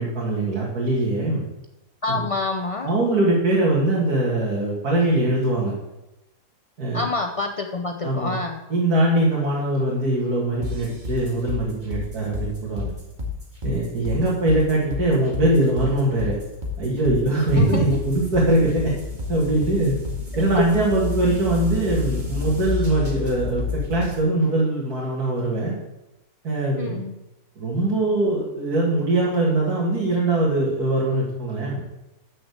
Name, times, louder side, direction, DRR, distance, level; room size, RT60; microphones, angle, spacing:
voice 1, 0.0-1.4 2.1-2.2 2.8-5.7 6.8-7.0 8.0-8.3 8.7-12.9 13.6-16.4 16.8-18.9 19.3-19.9 20.4-25.7 26.4-27.0 27.6-31.8, right 2 dB, 80° right, -4 dB, 2.5 m, -22 dB
voice 2, 2.0-2.9 6.9-8.6 17.5-18.0 20.6-20.7 26.8-27.1, left 3 dB, 50° left, 3 dB, 0.4 m, -27 dB
sound 1, 10.6-24.2, left 4 dB, 30° right, 2.1 m, -30 dB
7.8 x 6.5 x 7.9 m, 0.98 s
omnidirectional pair, 1.6 m